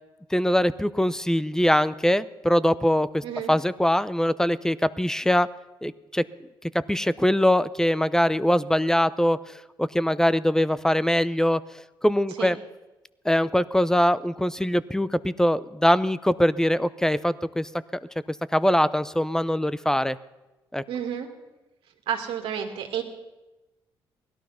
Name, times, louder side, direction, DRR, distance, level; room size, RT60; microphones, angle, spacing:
voice 1, 0.3-5.5 5.8-6.2 6.9-11.6 12.0-12.6 13.2-17.7 18.5-20.2 20.7-20.8, equal, 5° left, 17 dB, 0.6 m, -22 dB
voice 2, 3.2-3.5 12.4-12.5 20.9-21.3 22.1-23.0, right 8 dB, 80° right, 3 dB, 2.0 m, -30 dB
17.0 x 12.0 x 5.7 m, 1.1 s
supercardioid pair, 65°, 9 cm